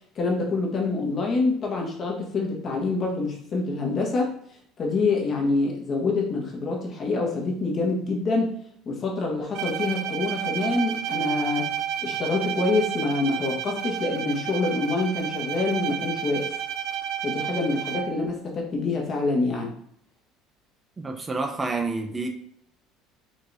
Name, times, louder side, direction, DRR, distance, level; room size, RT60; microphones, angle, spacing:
voice 1, 0.1-4.3 4.8-8.5 8.8-11.7 12.0-16.5 17.2-19.7, left 3 dB, 40° left, 0 dB, 1.3 m, -26 dB
Bowed string instrument, 9.5-18.3, right 10 dB, 75° right, 0.4 m, -31 dB
voice 2, 21.0-22.3, right 3 dB, 20° right, 4 dB, 0.6 m, -28 dB
5.0 x 3.1 x 2.7 m, 0.68 s
supercardioid pair, 100°, 0 cm